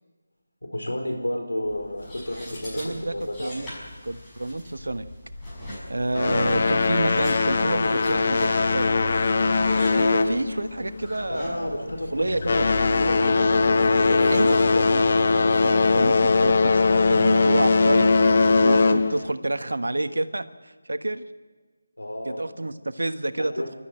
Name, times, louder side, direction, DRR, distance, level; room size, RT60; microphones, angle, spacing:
voice 1, 0.6-3.5 9.9-10.4 11.3-12.2 12.5-12.6 13.0-14.4 14.7-14.9 22.0-22.4 23.4-23.8, left 1 dB, 85° left, 3 dB, 5.1 m, -31 dB
sound 1, 1.6-17.1, left 2 dB, 10° left, 6.1 m, -41 dB
voice 2, 2.8-3.7 4.0-5.1 5.9-8.9 9.9-12.7 14.3-14.6 14.9-15.1 15.6-18.1 18.6-21.3 22.2-23.8, right 2 dB, 70° right, 11 dB, 1.3 m, -29 dB
sound 2, 6.1-11.0 11.3-11.7 12.2-19.3, left 3 dB, 45° left, 0.9 m, -20 dB
28.0 x 13.0 x 8.9 m, 1.4 s
figure-of-eight pair, 160°, 0 cm